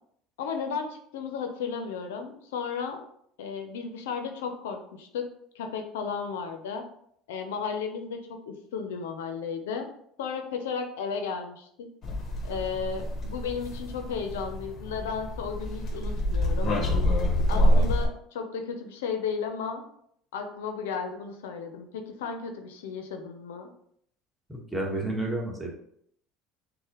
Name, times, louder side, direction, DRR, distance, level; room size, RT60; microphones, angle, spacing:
voice 1, 0.4-3.0 3.4-5.3 5.5-6.8 7.3-9.9 10.2-11.9 12.4-16.8 17.5-19.8 20.3-23.7, left 6 dB, 85° left, 5 dB, 0.5 m, -34 dB
sound 1, 12.0-18.1, left 1 dB, 45° left, 0.9 m, -26 dB
voice 2, 24.5-25.7, right 2 dB, 5° right, -2 dB, 1.3 m, -31 dB
6.2 x 2.1 x 2.9 m, 0.69 s
supercardioid pair, 80°, 0 cm